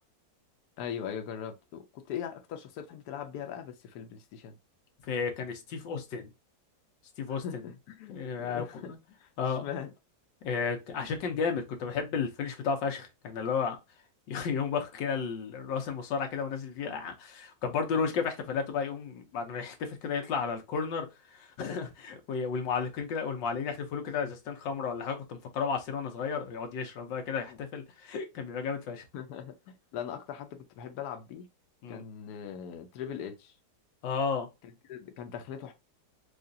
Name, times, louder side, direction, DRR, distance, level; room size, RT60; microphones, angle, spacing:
voice 1, 0.8-4.6 7.3-8.9 9.2-9.9 27.5-27.6 29.1-31.5 31.9-33.5 34.6-35.7, left 8 dB, 65° left, 1.1 m, -40 dB
voice 2, 5.0-6.3 7.2-7.6 8.1-9.0 9.4-9.7 10.4-13.8 14.3-21.1 21.3-29.0 31.8-32.0 34.0-34.5, left 6 dB, 85° left, 1.6 m, -33 dB
4.8 x 2.5 x 2.6 m
omnidirectional pair, 2.0 m